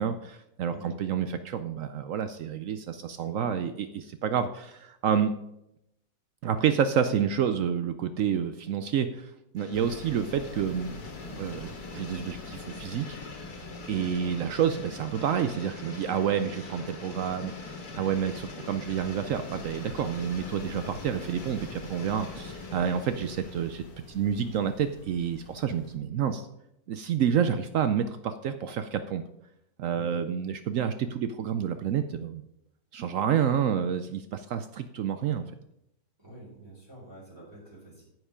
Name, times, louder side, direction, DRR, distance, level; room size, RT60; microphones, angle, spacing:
voice 1, 0.0-5.3 6.4-11.0 11.3-13.1 13.9-26.5 26.9-29.2 29.8-32.4 32.9-35.5, right 8 dB, 65° right, 10 dB, 0.9 m, -29 dB
sound 1, 9.6-24.1, left 3 dB, 85° left, 2.1 m, -43 dB
sound 2, 9.7-26.0, left 3 dB, 70° left, 2.0 m, -48 dB
voice 2, 14.0-14.3 29.9-30.2 36.2-38.0, right 1 dB, 15° right, -7 dB, 4.1 m, -48 dB
9.8 x 8.0 x 5.0 m, 0.82 s
omnidirectional pair, 1.6 m